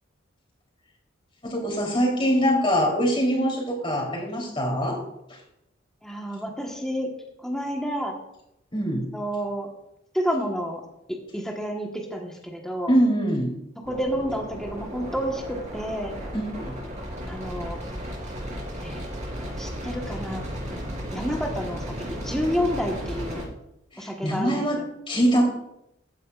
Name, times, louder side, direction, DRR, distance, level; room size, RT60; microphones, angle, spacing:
voice 1, 1.4-5.0 5.3-5.4 8.7-9.1 12.9-13.5 16.3-16.8 23.9-25.5, equal, 30° left, 0 dB, 3.2 m, -23 dB
voice 2, 6.0-7.1 7.4-8.2 9.1-9.7 10.1-10.8 11.1-12.9 13.9-16.1 17.2-17.8 18.8-19.0 19.4-20.4 21.1-21.8 22.1-23.4 24.0-24.7, equal, 5° left, 0 dB, 1.2 m, -29 dB
sound 1, 13.8-23.4, equal, 40° right, 4.3 m, -34 dB
14.5 x 9.7 x 2.4 m, 0.81 s
head